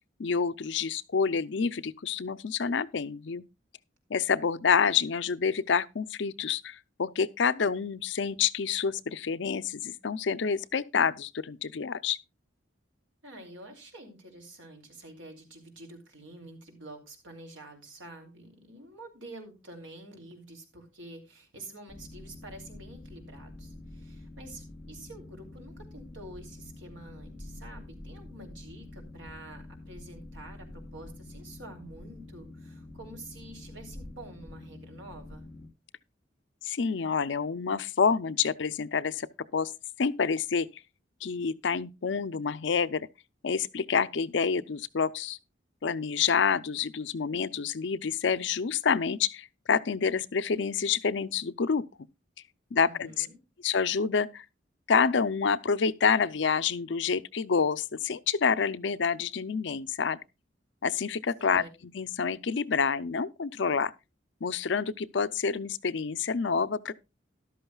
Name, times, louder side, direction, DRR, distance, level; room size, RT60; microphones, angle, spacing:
voice 1, 0.2-3.4 4.1-12.2 36.6-39.3 39.5-39.7 40.0-40.7 41.2-43.1 43.4-45.4 45.8-51.8 52.7-53.3 53.6-54.4 54.9-60.2 60.8-61.6 61.9-63.9 64.4-66.9, left 6 dB, 70° left, 0.5 m, -28 dB
voice 2, 13.2-35.5 52.8-53.4 61.4-61.7, right 1 dB, 85° right, 3.1 m, -48 dB
Boat Water vehicle, 21.9-35.7, left 1 dB, 5° right, 2.8 m, -46 dB
13.5 x 12.0 x 2.3 m
head